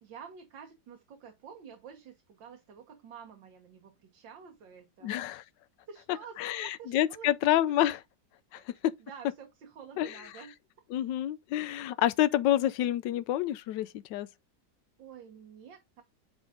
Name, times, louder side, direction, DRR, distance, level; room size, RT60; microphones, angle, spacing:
voice 1, 0.0-5.2 5.9-7.6 8.5-10.6 15.0-16.0, right 7 dB, 85° right, 1.9 m, -49 dB
voice 2, 5.0-5.4 6.4-8.0 8.5-8.9 10.0-10.2 10.9-14.3, left 12 dB, 80° left, 1.2 m, -28 dB
8.9 x 3.7 x 3.6 m
omnidirectional pair, 2.0 m